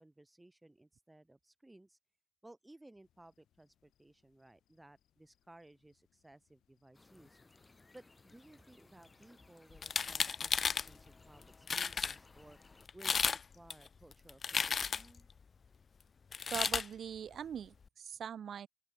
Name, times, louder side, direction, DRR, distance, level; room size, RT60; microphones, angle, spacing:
voice 1, 0.0-2.0 2.4-7.4 7.9-12.6 12.9-15.3, right 1 dB, 10° right, 2.9 m, -59 dB
sound 1, 3.0-10.2, left 11 dB, 70° left, 6.1 m, -77 dB
sound 2, 6.9-12.9, left 3 dB, 20° left, 2.5 m, -62 dB
sound 3, 9.8-10.9 11.4-11.5 11.7-12.1 12.9-13.4 13.7-15.2 16.3-16.9, left 5 dB, 40° left, 0.4 m, -33 dB
voice 2, 16.5-18.7, right 8 dB, 55° right, 0.7 m, -42 dB
open air
cardioid pair, 100°, 0 cm